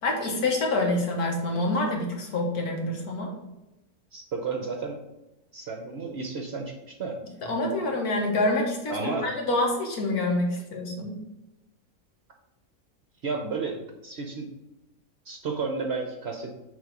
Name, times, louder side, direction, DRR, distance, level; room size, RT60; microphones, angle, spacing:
voice 1, 0.0-3.3 7.4-11.2, left 2 dB, 70° left, 0 dB, 1.8 m, -27 dB
voice 2, 4.1-5.0 5.5-7.2 8.9-9.2 13.2-14.5 15.3-16.6, right 4 dB, 55° right, 1 dB, 0.8 m, -32 dB
6.7 x 3.4 x 5.2 m, 0.96 s
omnidirectional pair, 1.7 m